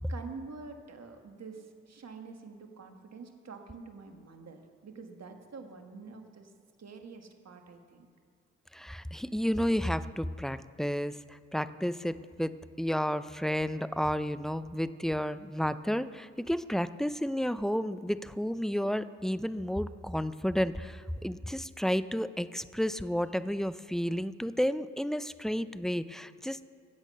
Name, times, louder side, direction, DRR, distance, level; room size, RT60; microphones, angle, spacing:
voice 1, 0.1-6.5 6.8-8.1, right 4 dB, 55° right, 5 dB, 1.7 m, -47 dB
voice 2, 8.7-26.6, equal, ahead, 14 dB, 0.6 m, -31 dB
15.5 x 8.3 x 5.5 m, 2.3 s
supercardioid pair, 45°, 31 cm